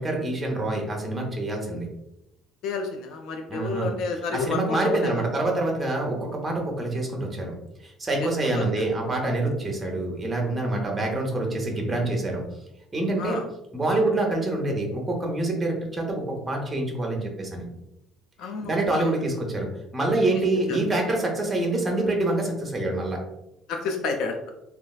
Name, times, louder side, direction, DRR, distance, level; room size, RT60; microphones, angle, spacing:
voice 1, 0.0-1.9 3.5-3.9 4.3-7.5 7.8-12.4 12.9-13.4 13.7-17.7 18.6-23.2, right 2 dB, 15° right, 0 dB, 0.6 m, -26 dB
voice 2, 2.6-5.1 8.2-8.9 10.9-11.1 13.2-13.4 18.4-19.1 20.7-20.8 23.7-24.4, left 4 dB, 65° left, 3 dB, 0.3 m, -30 dB
3.1 x 2.4 x 2.3 m, 0.87 s
cardioid pair, 170°, 0 cm